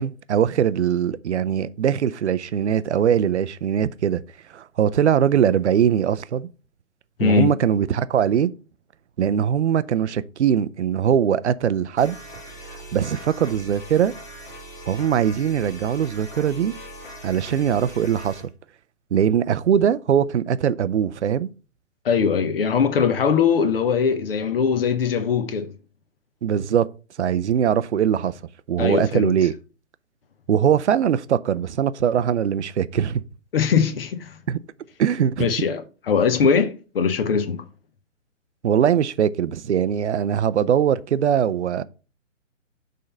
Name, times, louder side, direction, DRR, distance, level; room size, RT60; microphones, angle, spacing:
voice 1, 0.0-4.2 4.5-6.5 7.2-8.5 9.2-12.2 12.7-14.1 14.9-16.7 17.2-18.5 19.1-21.5 26.4-26.9 27.2-28.3 28.7-29.5 30.5-33.2 34.5-34.6 35.0-35.5 38.6-41.8, right 9 dB, 60° right, 0.6 m, -21 dB
voice 2, 7.2-7.5 22.0-25.7 28.8-29.3 33.5-34.4 35.4-37.7, left 6 dB, 45° left, 0.9 m, -21 dB
sound 1, 12.0-18.5, equal, 10° left, 1.5 m, -40 dB
6.6 x 3.7 x 5.5 m
figure-of-eight pair, 135°, 39 cm